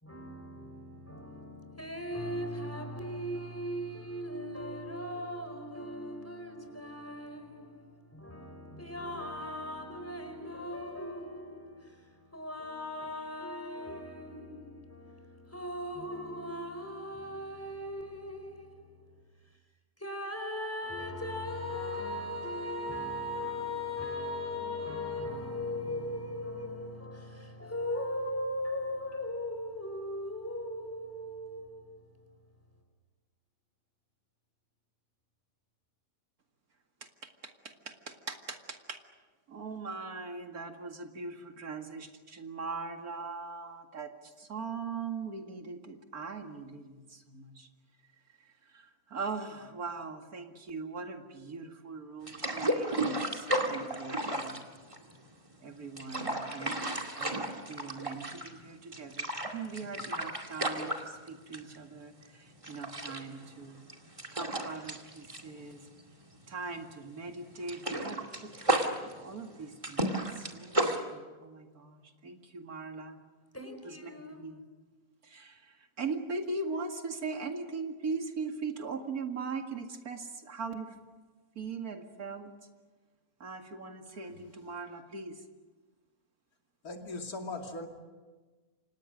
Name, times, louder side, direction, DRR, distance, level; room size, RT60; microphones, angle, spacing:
voice 1, 0.0-19.1 20.0-32.1 73.5-74.4, left 1 dB, 10° left, 4.8 m, -38 dB
voice 2, 37.0-39.0 39.5-47.7 48.4-54.7 55.6-63.8 64.3-65.9 66.5-73.2 73.8-74.6 75.2-81.0 81.5-82.6 83.4-85.4, right 4 dB, 80° right, 2.6 m, -41 dB
sound 1, 52.3-55.3 55.8-58.6 58.9-61.8 62.1-62.3 62.6-66.4 66.7-66.9 67.2-71.0, right 1 dB, 20° right, 2.3 m, -33 dB
voice 3, 86.8-87.9, left 2 dB, 80° left, 3.1 m, -39 dB
30.0 x 26.0 x 6.5 m
omnidirectional pair, 1.6 m